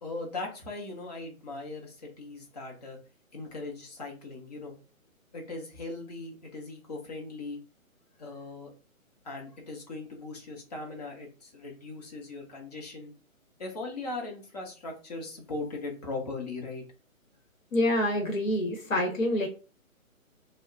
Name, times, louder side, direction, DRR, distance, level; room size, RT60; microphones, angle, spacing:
voice 1, 0.0-3.0 3.3-4.7 5.3-7.6 8.2-8.7 9.2-13.1 13.6-16.8, left 3 dB, 30° left, 0 dB, 0.7 m, -39 dB
voice 2, 17.7-19.5, left 1 dB, 65° left, 1 dB, 1.0 m, -26 dB
2.3 x 2.1 x 3.5 m, 0.34 s
figure-of-eight pair, 140°, 42 cm